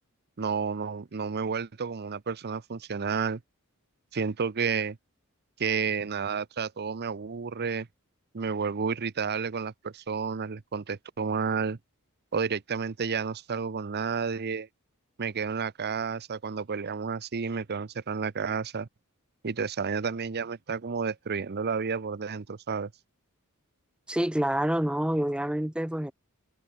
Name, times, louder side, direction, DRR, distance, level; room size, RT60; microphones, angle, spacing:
voice 1, 0.4-3.4 4.1-5.0 5.6-7.9 8.3-11.8 12.3-14.7 15.2-18.9 19.4-22.9, right 5 dB, 50° right, 0.7 m, -31 dB
voice 2, 24.1-26.1, right 1 dB, 5° right, 0.6 m, -27 dB
head